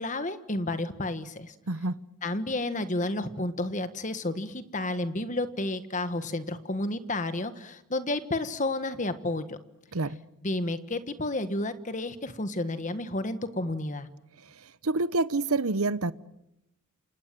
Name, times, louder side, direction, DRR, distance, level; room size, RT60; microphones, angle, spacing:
voice 1, 0.0-1.5 2.2-9.6 10.4-14.1, left 2 dB, 35° left, 1.5 m, -31 dB
voice 2, 1.7-2.0 9.9-10.2 14.8-16.1, right 3 dB, 75° right, 1.0 m, -27 dB
29.0 x 26.0 x 7.6 m
head